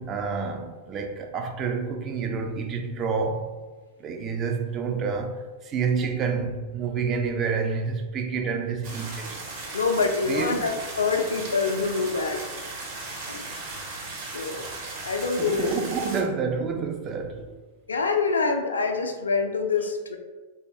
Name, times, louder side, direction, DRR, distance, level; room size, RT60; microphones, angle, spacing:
voice 1, 0.0-3.6 4.0-9.4 10.3-10.7 15.4-17.6, right 5 dB, 30° right, 0.3 m, -28 dB
sound 1, 8.8-16.2, right 3 dB, 45° right, 0.8 m, -37 dB
voice 2, 9.7-12.4 13.1-13.4 14.3-14.6 15.0-15.7 17.9-20.2, left 4 dB, 75° left, 0.3 m, -25 dB
3.1 x 2.0 x 2.6 m
figure-of-eight pair, 95°, 0 cm